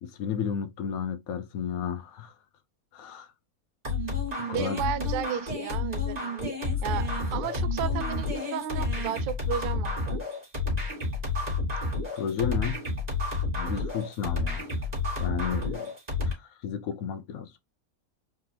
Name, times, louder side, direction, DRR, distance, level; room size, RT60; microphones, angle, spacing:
voice 1, 0.0-2.3 2.9-3.3 4.5-4.8 12.1-12.8 13.5-14.7 15.2-15.9 16.3-17.6, left 8 dB, 90° left, 1.2 m, -32 dB
sound 1, 3.8-16.3, left 3 dB, 25° right, 2.3 m, -30 dB
voice 2, 4.5-6.5 6.8-10.2, right 9 dB, 70° right, 0.5 m, -34 dB
4.6 x 3.8 x 2.9 m
omnidirectional pair, 1.5 m